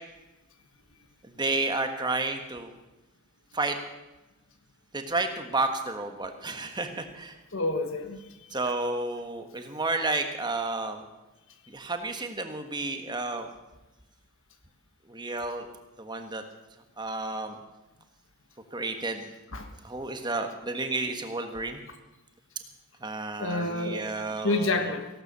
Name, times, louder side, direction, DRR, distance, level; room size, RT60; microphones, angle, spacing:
voice 1, 1.2-2.7 3.5-3.8 4.9-7.4 8.5-11.0 11.7-13.5 15.1-15.7 16.0-16.4 17.0-17.6 18.7-19.2 19.8-21.8 23.0-24.9, right 2 dB, 20° right, 6 dB, 1.4 m, -31 dB
voice 2, 7.5-8.5 19.5-19.7 23.4-25.1, left 2 dB, 60° left, 7 dB, 1.5 m, -29 dB
17.0 x 12.0 x 6.9 m, 1.0 s
head